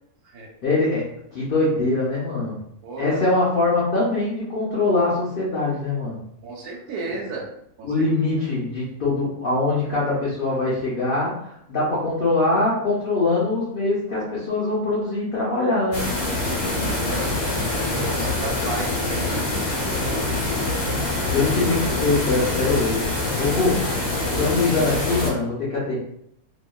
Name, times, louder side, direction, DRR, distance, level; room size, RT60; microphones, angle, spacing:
voice 1, 0.6-2.6 3.0-6.2 7.8-16.0 18.2-18.3 21.3-23.9 24.4-26.0, left 2 dB, 50° left, -7 dB, 0.6 m, -23 dB
voice 2, 2.8-3.2 6.4-7.5 7.8-8.1 16.4-20.9 24.3-24.5, right 3 dB, 90° right, -1 dB, 1.1 m, -35 dB
sound 1, 15.9-25.3, left 2 dB, 75° left, 1.3 m, -25 dB
2.8 x 2.3 x 2.2 m, 0.73 s
omnidirectional pair, 1.6 m